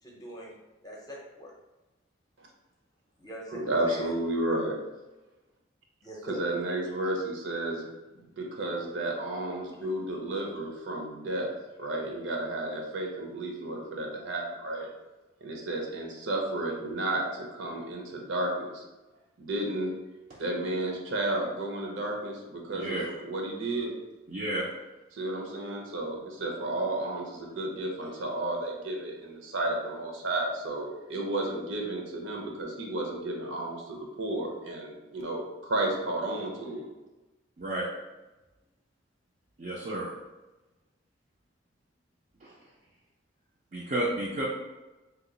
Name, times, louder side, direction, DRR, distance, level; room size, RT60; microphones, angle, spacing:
voice 1, 0.0-0.6 0.8-1.5 3.2-4.1 6.0-6.5 9.7-9.8, equal, 20° left, -3 dB, 0.6 m, -43 dB
voice 2, 3.5-4.8 6.3-7.9 8.2-11.5 11.8-14.9 15.4-18.8 19.4-19.9 20.4-23.9 25.1-36.9, right 1 dB, 80° right, 0 dB, 0.7 m, -32 dB
voice 3, 22.7-23.1 24.3-24.7 37.6-37.9 39.6-40.1 42.4-42.5 43.7-44.5, right 1 dB, 40° right, -5 dB, 0.4 m, -31 dB
2.9 x 2.3 x 3.8 m, 1.1 s
head